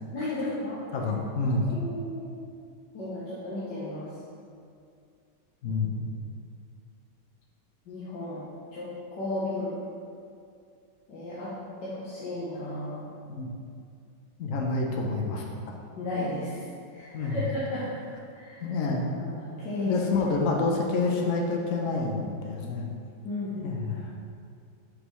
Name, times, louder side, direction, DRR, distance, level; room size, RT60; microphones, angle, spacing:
voice 1, 0.1-0.8 1.7-2.3 2.9-4.1 5.6-5.8 7.9-8.4 8.7-9.7 11.1-11.5 11.8-13.0 16.0-16.6 16.9-17.9 18.3-18.6 19.2-19.9 23.2-23.8, left 1 dB, 65° left, -9 dB, 1.6 m, -34 dB
voice 2, 0.9-1.7 5.6-6.0 13.3-13.5 14.4-15.5 17.1-17.4 18.6-19.1 19.8-22.9 23.6-24.1, left 3 dB, 80° left, 0 dB, 0.7 m, -28 dB
6.9 x 5.4 x 3.1 m, 2.3 s
omnidirectional pair, 2.2 m